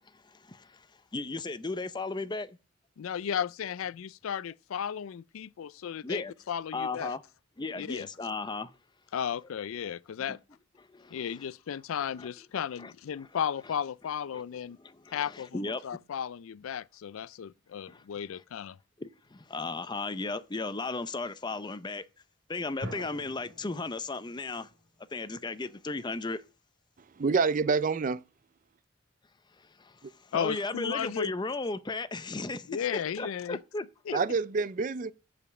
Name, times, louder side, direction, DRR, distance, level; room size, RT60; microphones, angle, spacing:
voice 1, 0.0-0.9 1.1-2.6 6.0-6.3 6.7-7.2 7.6-8.7 9.8-9.9 10.3-10.4 10.8-11.5 12.2-12.3 12.8-12.9 13.2-13.3 14.3-14.4 14.8-15.8 17.9-18.0 18.3-18.4 19.0-22.0 22.5-24.7 25.1-26.4 29.6-33.8 34.1-34.2, left 3 dB, 20° left, 0.5 m, -36 dB
voice 2, 3.0-7.1 7.8-8.1 9.1-10.4 11.1-14.8 15.1-18.8 30.3-31.3 32.7-33.6 34.1-34.2, left 8 dB, 75° left, 0.4 m, -34 dB
sound 1, 22.8-26.3, equal, 80° right, 3.0 m, -46 dB
voice 3, 27.2-28.2 34.1-35.1, right 4 dB, 40° right, 0.4 m, -27 dB
6.9 x 5.1 x 7.1 m
head